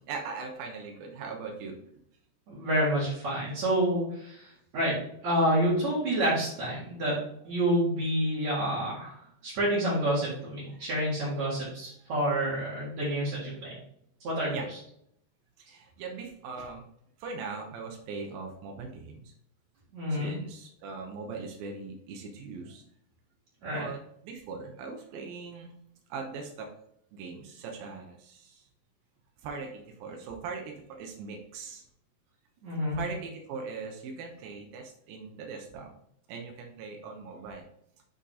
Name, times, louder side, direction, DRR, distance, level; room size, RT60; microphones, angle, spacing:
voice 1, 0.0-1.9 10.7-10.9 14.5-14.7 15.6-16.8 17.2-19.3 20.1-22.8 23.7-25.8 26.1-26.7 27.1-28.7 29.4-31.8 32.9-35.9 36.3-37.7, right 4 dB, 90° right, 2 dB, 2.8 m, -40 dB
voice 2, 2.5-5.0 5.2-9.1 9.4-13.7 14.2-14.6 19.9-20.3 23.6-23.9 32.6-33.0, right 1 dB, 55° right, -10 dB, 3.3 m, -28 dB
8.0 x 4.2 x 3.7 m, 0.72 s
omnidirectional pair, 4.1 m